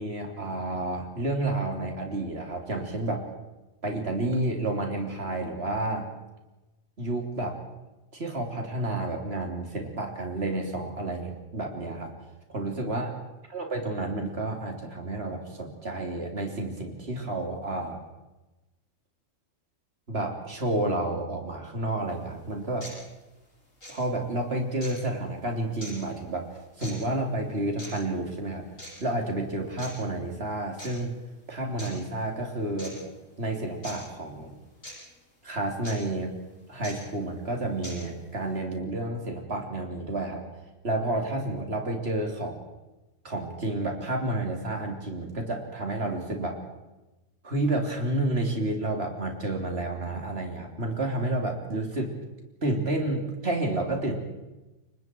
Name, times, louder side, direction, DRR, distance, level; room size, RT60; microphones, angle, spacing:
voice 1, 0.0-3.2 3.8-6.1 7.0-7.6 8.1-12.1 12.5-13.1 13.5-18.0 20.1-22.9 23.9-26.5 26.8-28.6 29.0-31.1 31.5-33.1 33.4-34.5 35.4-36.3 36.7-40.4 40.8-42.6 43.2-46.6 47.4-52.2 52.6-54.2, right 2 dB, 50° right, 2 dB, 3.7 m, -30 dB
sound 1, 22.1-22.2 22.8-23.0 23.8-24.0 24.8-25.0 25.8-25.9 26.8-27.0 27.8-27.9 28.8-29.0 29.8-29.9 30.8-30.9 31.8-31.9 32.8-32.9 33.8-34.0 34.8-34.9 35.8-36.0 36.8-36.9 37.8-38.0, equal, 85° left, 8.3 m, -41 dB
30.0 x 24.0 x 4.7 m, 1.1 s
omnidirectional pair, 1.3 m